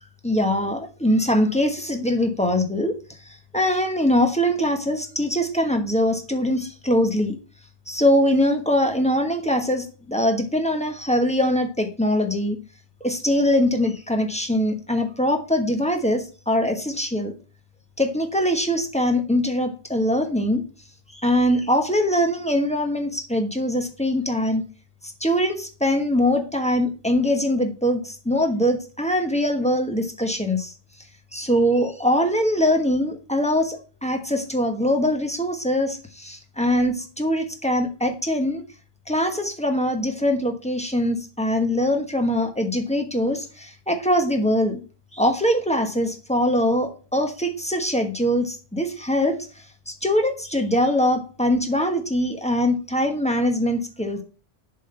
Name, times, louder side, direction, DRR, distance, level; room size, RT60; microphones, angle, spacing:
voice 1, 0.2-3.0 3.5-7.4 7.9-12.6 13.0-17.3 18.0-20.7 21.1-24.6 25.0-30.7 31.3-38.6 39.1-44.8 45.1-49.5 49.9-54.2, equal, 5° left, 4 dB, 1.2 m, -22 dB
7.3 x 3.9 x 6.7 m, 0.36 s
omnidirectional pair, 1.1 m